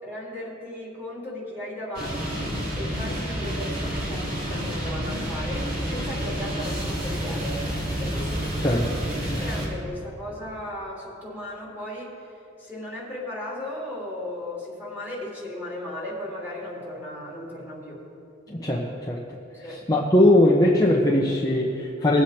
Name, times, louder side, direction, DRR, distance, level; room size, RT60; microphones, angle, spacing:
voice 1, 0.0-7.6 8.0-18.0 19.6-19.8, left 1 dB, 10° right, -6 dB, 3.1 m, -36 dB
sound 1, 1.9-9.7, equal, 40° right, 3.4 m, -29 dB
voice 2, 18.5-19.2 19.9-22.2, left 1 dB, 20° left, -3 dB, 0.8 m, -20 dB
20.5 x 7.7 x 4.3 m, 2.7 s
head